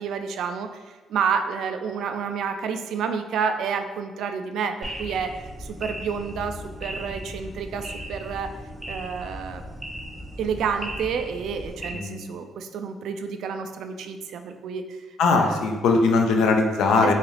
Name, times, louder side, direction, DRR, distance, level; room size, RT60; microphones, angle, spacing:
voice 1, 0.0-8.6 8.9-9.6 10.4-15.0 15.4-15.6 17.0-17.1, right 6 dB, 75° right, 7 dB, 0.3 m, -29 dB
sound 1, 4.8-11.9, equal, 10° right, 0.6 m, -37 dB
voice 2, 15.2-17.1, left 4 dB, 85° left, 3 dB, 0.5 m, -20 dB
3.9 x 2.4 x 3.2 m, 1.3 s
cardioid pair, 90°, 0 cm